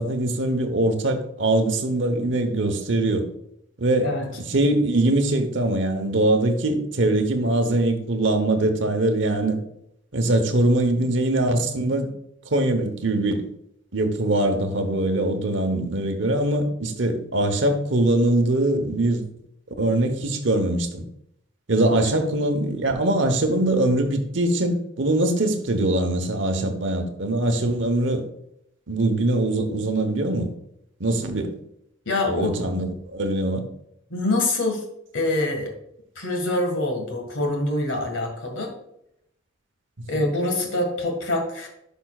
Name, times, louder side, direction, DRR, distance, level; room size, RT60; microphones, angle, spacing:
voice 1, 0.0-3.3 3.8-4.1 4.5-9.6 10.1-12.1 12.5-13.4 13.9-19.2 19.8-21.0 21.7-28.2 28.9-30.5 31.0-31.5 32.3-33.6, right 1 dB, 65° right, 6 dB, 1.0 m, -22 dB
voice 2, 32.1-32.5 34.1-34.8 35.1-35.7 36.2-38.7 40.1-41.7, left 2 dB, 70° left, 3 dB, 1.8 m, -25 dB
10.5 x 5.5 x 2.4 m, 0.77 s
head